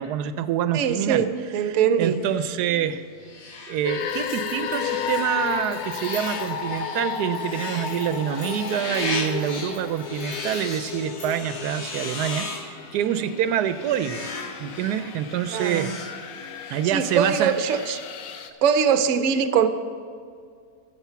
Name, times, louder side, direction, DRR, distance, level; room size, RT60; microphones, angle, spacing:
voice 1, 0.0-1.3 1.6-3.0 3.7-15.9 16.7-17.5, right 10 dB, 85° right, 12 dB, 1.1 m, -26 dB
voice 2, 0.7-2.2 15.5-16.0 16.9-18.0 18.6-19.7, right 7 dB, 65° right, 10 dB, 0.9 m, -22 dB
sound 1, 2.1-18.1, left 3 dB, 50° left, 1.2 m, -37 dB
sound 2, 3.8-18.5, left 7 dB, 70° left, 1.2 m, -34 dB
sound 3, 4.0-11.3, left 1 dB, 85° left, 3.9 m, -46 dB
14.0 x 7.2 x 5.7 m, 2.2 s
omnidirectional pair, 1.7 m